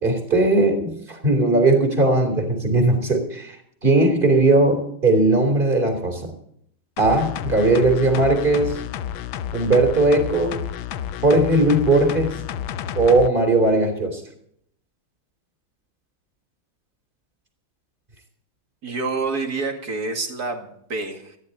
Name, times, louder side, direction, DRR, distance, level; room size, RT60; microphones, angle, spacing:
voice 1, 0.0-3.6 3.8-6.3 7.0-8.8 9.5-10.7 11.2-12.3 12.9-14.2, right 2 dB, 25° right, 5 dB, 3.3 m, -18 dB
sound 1, 7.0-13.3 13.7-13.8, left 10 dB, 75° left, 1.5 m, -31 dB
voice 2, 18.8-21.4, right 3 dB, 50° right, 4 dB, 2.5 m, -28 dB
19.0 x 13.5 x 4.1 m, 0.69 s
omnidirectional pair, 2.2 m